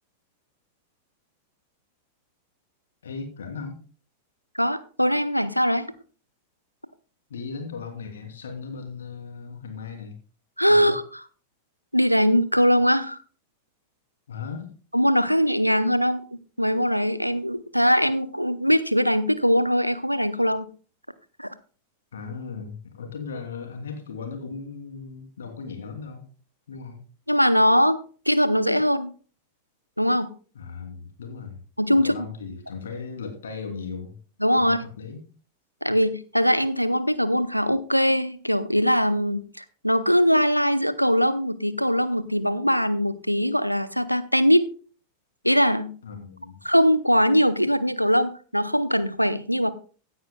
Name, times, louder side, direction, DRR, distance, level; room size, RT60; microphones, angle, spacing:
voice 1, 3.0-3.8 7.3-10.2 10.7-10.9 14.3-14.7 22.1-26.2 26.7-27.0 30.5-31.6 32.0-34.2 34.6-35.2 46.0-46.6, left 5 dB, 65° left, 4 dB, 3.0 m, -37 dB
voice 2, 4.5-5.9 10.6-11.2 11.9-13.2 14.9-16.2 16.6-20.7 21.4-21.5 27.3-28.0 28.3-29.1 30.0-30.3 31.8-32.1 34.4-34.8 35.8-44.6 45.4-45.9 46.6-49.7, equal, 90° right, 14 dB, 0.7 m, -21 dB
16.0 x 9.5 x 2.3 m, 0.38 s
figure-of-eight pair, 90°, 0 cm